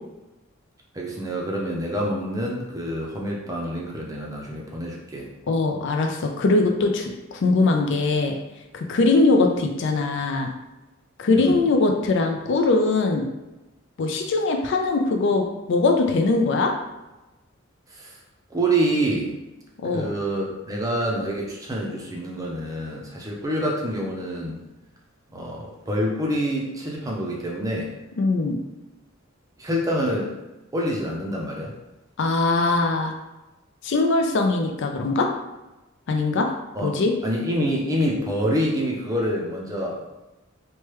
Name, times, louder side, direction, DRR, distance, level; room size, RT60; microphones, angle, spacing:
voice 1, 0.9-5.3 11.4-11.6 17.9-18.1 18.5-19.3 19.9-24.6 25.3-27.9 29.6-30.3 30.7-31.7 36.7-36.9 37.2-40.0, right 1 dB, 15° right, -2 dB, 0.5 m, -26 dB
voice 2, 5.5-8.4 8.7-10.5 11.2-13.3 14.0-16.7 19.8-20.1 28.2-28.6 32.2-33.1 33.8-35.3 36.1-36.5 36.8-37.1, left 3 dB, 65° left, 3 dB, 0.4 m, -21 dB
3.1 x 2.2 x 3.0 m, 1.0 s
head